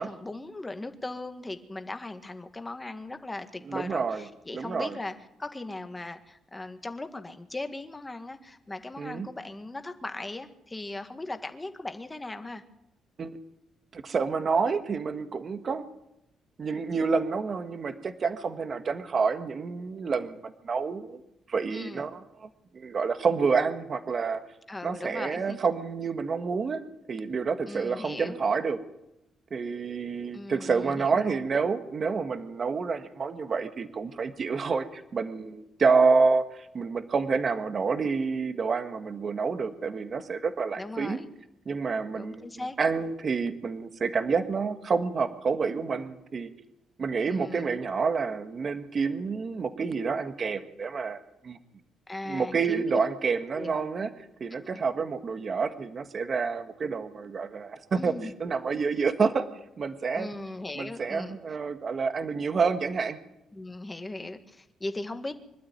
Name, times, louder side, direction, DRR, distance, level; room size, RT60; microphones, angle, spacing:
voice 1, 0.0-5.1 5.4-12.6 21.7-22.1 24.7-25.6 27.7-28.4 30.3-31.5 40.8-41.3 42.1-42.8 47.3-47.8 52.1-53.0 53.6-53.7 54.5-54.8 58.0-58.3 60.1-61.4 63.5-65.3, left 2 dB, 15° left, 7 dB, 1.8 m, -38 dB
voice 2, 3.7-4.3 4.5-5.0 9.0-9.3 13.2-13.4 13.9-15.8 16.6-21.2 21.5-22.5 22.7-24.4 24.8-26.8 27.1-28.8 29.5-41.2 41.6-42.4 42.8-46.5 47.0-51.6 52.2-54.1 54.4-58.1 58.4-59.5 59.8-60.3 60.7-63.2, right 5 dB, 40° right, 9 dB, 1.5 m, -28 dB
24.5 x 12.5 x 9.4 m, 0.86 s
cardioid pair, 120°, 0 cm